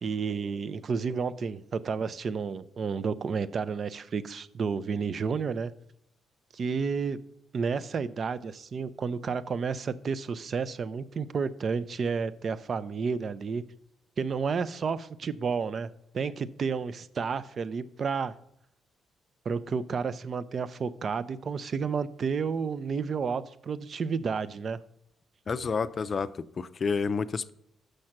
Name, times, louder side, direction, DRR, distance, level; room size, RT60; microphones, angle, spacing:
voice 1, 0.0-5.7 6.5-7.2 7.5-13.6 14.2-18.3 19.5-24.8, right 5 dB, 50° right, 15 dB, 0.5 m, -31 dB
voice 2, 25.5-27.5, left 5 dB, 40° left, 13 dB, 0.4 m, -30 dB
6.5 x 6.3 x 5.9 m, 0.74 s
cardioid pair, 90°, 0 cm